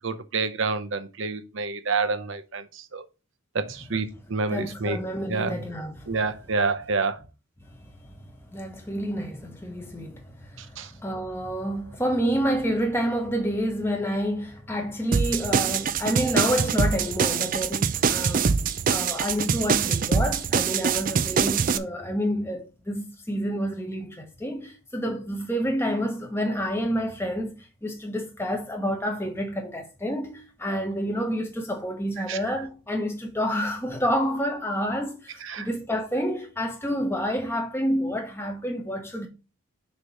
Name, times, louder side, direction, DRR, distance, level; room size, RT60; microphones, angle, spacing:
voice 1, 0.0-2.6 2.9-3.0 3.5-5.0 5.3-5.6 6.1-7.2 10.8-10.9 32.3-32.4 35.4-35.7, right 4 dB, 60° right, 0.7 m, -28 dB
voice 2, 4.5-6.1 7.6-18.6 18.9-39.3, equal, 10° left, 1.1 m, -29 dB
sound 1, 15.1-21.8, right 6 dB, 40° right, 0.3 m, -24 dB
6.5 x 3.0 x 5.4 m
head